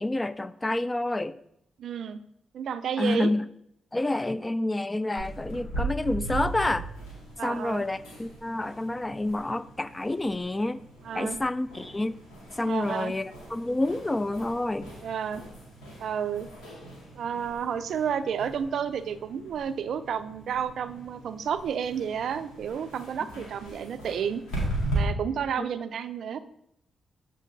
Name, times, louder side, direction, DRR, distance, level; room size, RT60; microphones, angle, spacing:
voice 1, 0.0-1.4 3.0-3.5 3.9-6.9 7.4-10.9 11.1-12.2 12.6-14.9 25.6-25.7, left 2 dB, 25° left, 16 dB, 0.3 m, -28 dB
voice 2, 1.8-2.2 2.5-3.3 7.4-7.8 11.0-11.4 12.7-13.1 15.0-15.4 16.0-16.5 17.1-24.4 24.9-26.4, right 8 dB, 75° right, 12 dB, 0.3 m, -31 dB
sound 1, 5.2-25.0, right 2 dB, 90° left, 2.0 m, -39 dB
7.3 x 3.8 x 3.9 m, 0.73 s
supercardioid pair, 50°, 0 cm